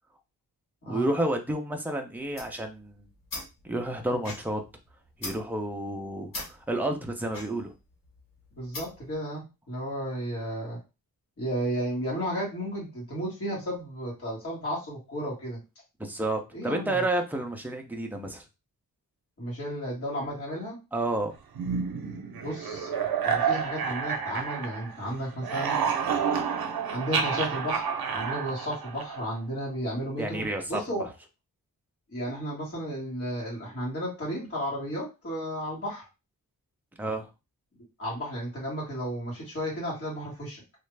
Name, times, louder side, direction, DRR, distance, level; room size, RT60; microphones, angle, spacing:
voice 1, 0.8-3.1 3.6-4.6 5.2-7.7 16.0-18.4 20.9-21.3 30.2-30.8 37.0-37.3, right 1 dB, 5° right, 3 dB, 0.5 m, -30 dB
sound 1, 2.2-9.2, left 2 dB, 65° left, 1.2 m, -43 dB
voice 2, 8.5-10.8 11.4-15.6 16.5-17.0 19.4-20.8 22.4-22.9 23.2-25.7 26.9-27.9 28.1-31.1 32.1-36.1 38.0-40.6, equal, 40° left, -6 dB, 1.9 m, -33 dB
sound 2, 21.5-25.0 25.3-29.4, right 6 dB, 80° right, 0.7 m, -29 dB
3.1 x 2.4 x 3.2 m, 0.26 s
wide cardioid pair, 175°, 36 cm